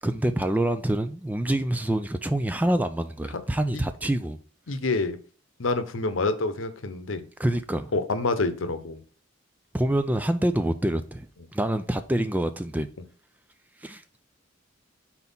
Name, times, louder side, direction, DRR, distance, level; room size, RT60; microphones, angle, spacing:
voice 1, 0.0-4.4 7.4-7.9 9.7-12.9 13.8-14.0, right 1 dB, 10° right, 0.3 m, -26 dB
voice 2, 4.7-5.2 5.6-7.2 7.9-9.0, left 3 dB, 85° left, 0.8 m, -27 dB
4.4 x 4.1 x 5.4 m
head